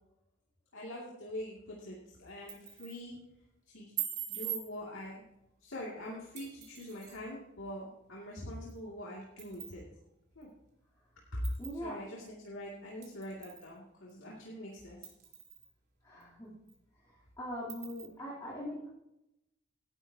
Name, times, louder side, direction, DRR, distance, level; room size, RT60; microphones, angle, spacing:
voice 1, 0.7-3.2 3.7-3.9 4.3-5.2 5.6-9.8 10.3-10.5 11.3-11.4 11.8-15.1, left 1 dB, 80° left, -4 dB, 2.6 m, -44 dB
sound 1, 2.3-3.0 4.0-4.6 6.4-7.2 8.7-8.8 9.4-9.8 10.4-10.5 11.4-11.8 13.0-13.7 14.1-14.2 15.0-15.7 16.2-16.3 16.7-16.8 17.7-18.1, right 11 dB, 55° right, 3.9 m, -41 dB
voice 2, 11.6-12.0 16.0-16.5 17.1-18.9, equal, 20° left, -8 dB, 3.5 m, -41 dB
17.5 x 11.5 x 2.9 m, 0.87 s
head